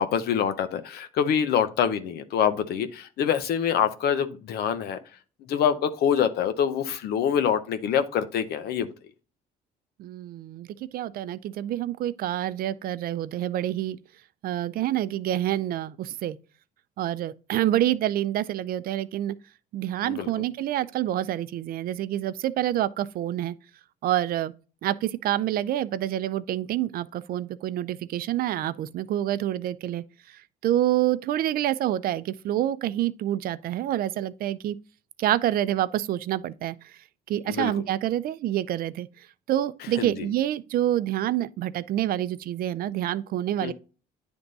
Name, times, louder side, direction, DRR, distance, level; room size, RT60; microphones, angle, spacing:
voice 1, 0.0-5.0 5.5-8.9 20.0-20.3 37.5-37.7 39.9-40.3 43.6-43.7, left 8 dB, 70° left, 0.8 m, -25 dB
voice 2, 10.0-10.7 10.9-14.0 14.4-16.4 17.0-19.4 19.7-23.6 24.0-24.5 24.8-30.0 30.6-34.8 35.2-36.8 37.3-39.1 39.5-43.7, right 13 dB, 60° right, 0.5 m, -27 dB
9.4 x 3.5 x 4.0 m
cardioid pair, 110°, 17 cm